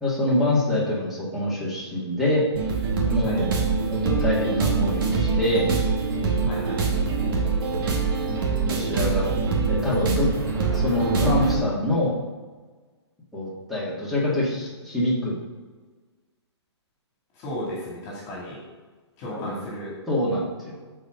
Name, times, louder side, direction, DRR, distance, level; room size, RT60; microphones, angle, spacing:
voice 1, 0.0-2.4 3.1-3.5 3.9-5.7 8.6-10.3 10.7-12.2 13.3-15.4 19.3-19.5 20.1-20.8, left 1 dB, ahead, -7 dB, 2.2 m, -25 dB
sound 1, 2.5-11.6, right 4 dB, 50° right, 2.0 m, -24 dB
voice 2, 6.4-7.0 17.3-18.6 19.2-20.0, equal, 25° left, -5 dB, 2.5 m, -34 dB
11.5 x 4.9 x 3.8 m, 1.4 s
hypercardioid pair, 150°, 15 cm